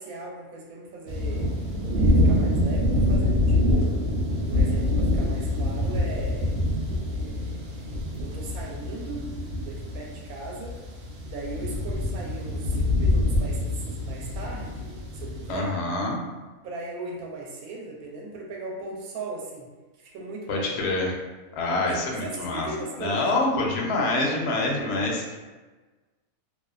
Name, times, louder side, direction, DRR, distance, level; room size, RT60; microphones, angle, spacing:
voice 1, 0.0-1.5 2.0-4.0 4.4-6.6 7.1-9.3 9.6-10.8 11.2-15.8 16.6-19.7 20.0-20.8 21.6-23.5, right 2 dB, 80° right, -1 dB, 1.0 m, -38 dB
sound 1, 1.1-15.6, left 1 dB, 65° right, 0.6 m, -25 dB
voice 2, 15.5-16.2 20.5-21.1 21.5-22.7 23.0-25.4, left 2 dB, 65° left, -1 dB, 0.7 m, -26 dB
2.6 x 2.1 x 2.3 m, 1.3 s
omnidirectional pair, 1.5 m